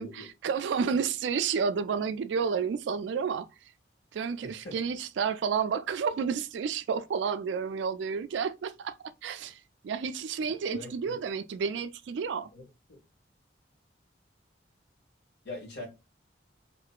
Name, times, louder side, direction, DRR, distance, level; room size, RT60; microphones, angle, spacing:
voice 1, 0.0-3.5 4.1-9.0 9.2-12.5, right 6 dB, 75° right, 0.3 m, -31 dB
voice 2, 4.4-4.8 10.7-11.2 12.5-12.6 12.9-13.0 15.4-15.9, left 2 dB, 65° left, 1.5 m, -42 dB
2.8 x 2.4 x 2.2 m
head